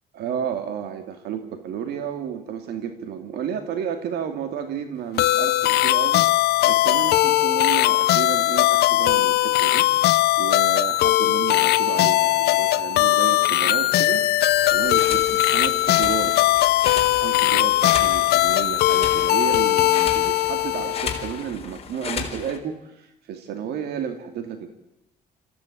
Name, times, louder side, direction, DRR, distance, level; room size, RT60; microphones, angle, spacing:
voice 1, 0.1-6.2 6.6-9.9 10.4-14.3 14.7-16.4 17.1-24.7, right 8 dB, 75° right, 7 dB, 2.5 m, -32 dB
sound 1, 5.2-21.3, left 16 dB, 75° left, 1.0 m, -19 dB
sound 2, 14.5-22.6, left 6 dB, 35° left, 3.9 m, -34 dB
26.5 x 15.5 x 8.6 m, 0.90 s
cardioid pair, 110°, 17 cm